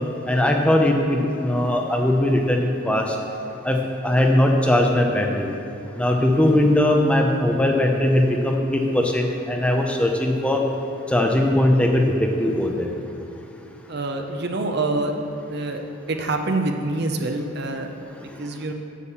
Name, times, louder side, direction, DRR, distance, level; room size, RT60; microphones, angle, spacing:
voice 1, 0.3-3.2 3.6-5.5 6.0-10.6 11.1-12.9, left 1 dB, 5° left, 1 dB, 0.7 m, -20 dB
voice 2, 13.9-15.8 16.1-17.9 18.2-18.7, right 2 dB, 50° right, 5 dB, 0.8 m, -26 dB
8.3 x 7.4 x 7.2 m, 2.7 s
head